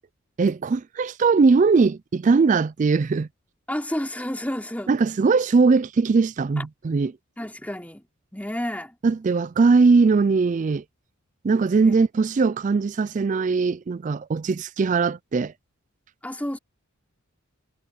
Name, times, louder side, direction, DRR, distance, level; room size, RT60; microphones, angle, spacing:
voice 1, 0.4-3.3 4.9-7.1 9.0-10.8 11.4-15.5, right 4 dB, 35° right, 0.3 m, -20 dB
voice 2, 3.7-4.9 6.6-6.7 7.4-8.0 8.3-8.9 11.8-11.9 16.2-16.6, left 1 dB, 5° left, 3.3 m, -30 dB
head